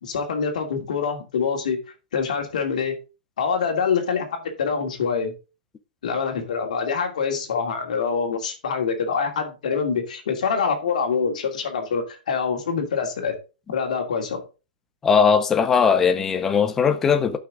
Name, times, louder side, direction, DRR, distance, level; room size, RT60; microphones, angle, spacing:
voice 1, 0.0-1.8 2.1-2.9 3.4-5.3 6.0-13.3 13.7-14.4, left 5 dB, 50° left, 2.7 m, -25 dB
voice 2, 15.0-17.4, left 6 dB, 5° left, 0.5 m, -19 dB
12.5 x 5.9 x 3.7 m
hypercardioid pair, 180°, 5 cm